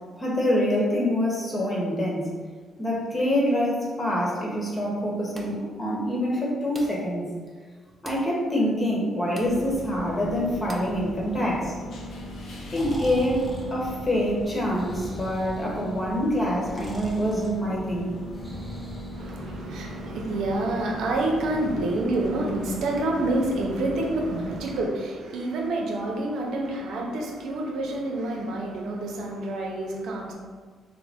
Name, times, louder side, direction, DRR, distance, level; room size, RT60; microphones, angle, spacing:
voice 1, 0.2-2.3 2.8-7.3 8.0-11.7 12.7-18.2, equal, 25° left, -4 dB, 1.1 m, -26 dB
sound 1, 5.3-5.7 6.7-7.1 8.0-8.3 9.4-9.6 10.7-11.0, right 2 dB, 25° right, 0.5 m, -42 dB
sound 2, 9.4-24.8, left 1 dB, 75° left, 0.6 m, -38 dB
Breathing, 12.6-19.9, equal, 5° right, 0.8 m, -41 dB
voice 2, 19.2-30.3, right 2 dB, 75° right, 0 dB, 0.7 m, -28 dB
3.8 x 2.2 x 3.5 m, 1.5 s
cardioid pair, 90°, 0 cm